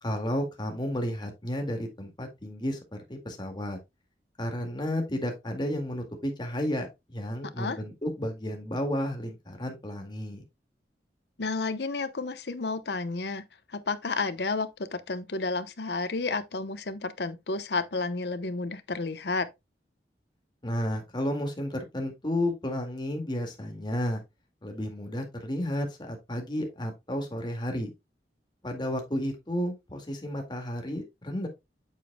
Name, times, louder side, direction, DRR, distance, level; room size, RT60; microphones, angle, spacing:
voice 1, 0.0-3.8 4.4-10.4 20.6-24.2 24.6-27.9 28.6-31.5, left 1 dB, 25° left, 2.0 m, -32 dB
voice 2, 11.4-13.4 13.7-19.5, left 3 dB, 65° left, 0.9 m, -31 dB
8.2 x 7.2 x 2.2 m
head